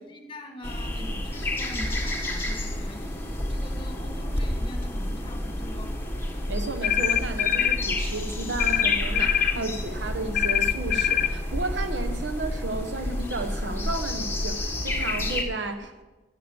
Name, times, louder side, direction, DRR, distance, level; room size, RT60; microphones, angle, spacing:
voice 1, 0.0-5.9 9.5-9.7, left 1 dB, 30° left, 1.5 m, -43 dB
sound 1, 0.6-15.4, left 1 dB, 15° left, 1.2 m, -30 dB
voice 2, 6.5-16.0, right 2 dB, 85° right, 1.1 m, -33 dB
sound 2, 6.8-7.8 8.6-9.6 10.3-11.3, left 10 dB, 50° left, 0.5 m, -23 dB
14.0 x 7.3 x 7.0 m
head